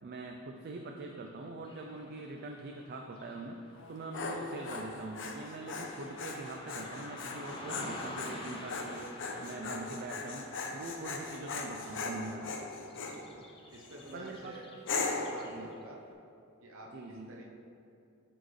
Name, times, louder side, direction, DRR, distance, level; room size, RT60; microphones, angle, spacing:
voice 1, 0.0-3.6 3.9-9.1 9.4-12.5 14.1-14.6 15.5-15.7 16.9-17.4, right 2 dB, 50° right, 2 dB, 0.4 m, -43 dB
Car passing by / Traffic noise roadway noise, 1.6-15.9, left 1 dB, 25° left, 0.8 m, -50 dB
Dog, 3.8-13.2 13.7-14.2 14.9-15.4, left 4 dB, 60° left, 0.7 m, -39 dB
voice 2, 13.7-14.7 15.0-16.0 16.6-17.5, right 1 dB, 65° right, -1 dB, 0.8 m, -48 dB
12.0 x 4.3 x 3.2 m, 2.6 s
head